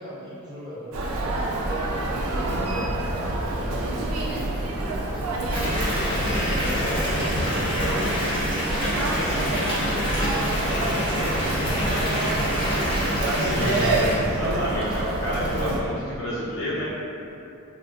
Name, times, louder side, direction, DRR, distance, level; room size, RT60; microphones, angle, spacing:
voice 1, 0.0-4.4 5.0-8.1 8.6-12.5, equal, 20° right, -9 dB, 0.7 m, -37 dB
Human voice, 0.9-15.8, right 1 dB, 80° right, 0.4 m, -27 dB
Water tap faucet / Bathtub (filling or washing) / Fill (with liquid), 5.5-14.1, equal, 20° left, 0.8 m, -27 dB
voice 2, 13.4-13.9 14.1-16.9, equal, 85° left, -8 dB, 0.9 m, -30 dB
3.4 x 2.2 x 2.6 m, 2.8 s
head